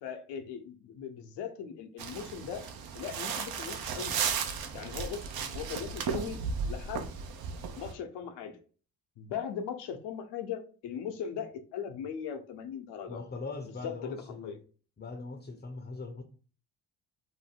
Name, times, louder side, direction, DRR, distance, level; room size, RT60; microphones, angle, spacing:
voice 1, 0.0-2.7 2.9-4.2 4.7-6.4 6.6-7.1 7.8-8.6 9.2-13.2 13.8-14.6, left 7 dB, 70° left, 0.7 m, -39 dB
sound 1, 2.0-7.9, right 6 dB, 60° right, 0.6 m, -35 dB
voice 2, 13.1-14.6 15.0-16.2, left 3 dB, 25° left, 0.6 m, -41 dB
2.6 x 2.0 x 3.4 m
hypercardioid pair, 50°, 43 cm